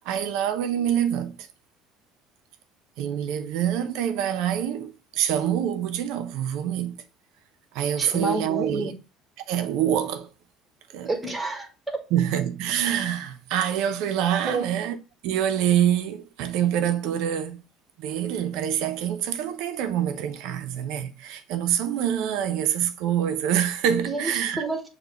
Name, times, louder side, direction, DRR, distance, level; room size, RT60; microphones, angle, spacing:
voice 1, 0.0-1.5 3.0-7.0 7.7-8.9 9.5-10.3 10.9-11.1 12.1-15.0 15.2-17.6 18.0-24.7, right 10 dB, 70° right, 0.6 m, -26 dB
voice 2, 8.0-8.9 11.0-12.0 14.5-14.6 24.1-24.9, right 2 dB, 10° right, 1.3 m, -29 dB
6.7 x 2.2 x 2.9 m
hypercardioid pair, 75°, 0 cm